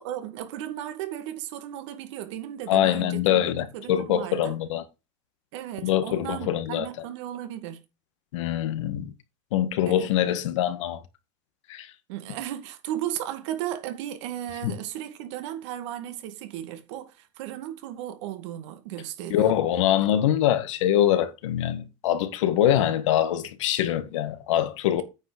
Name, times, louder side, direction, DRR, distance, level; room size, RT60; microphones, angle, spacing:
voice 1, 0.0-4.5 5.5-7.8 9.9-10.1 12.1-19.5 20.0-20.1, right 12 dB, 70° right, 2.1 m, -35 dB
voice 2, 2.7-4.8 5.8-6.9 8.3-9.1 9.5-11.0 11.7-11.9 14.6-14.7 19.3-25.0, left 11 dB, 85° left, 1.7 m, -24 dB
9.0 x 6.0 x 5.0 m
supercardioid pair, 130°, 15 cm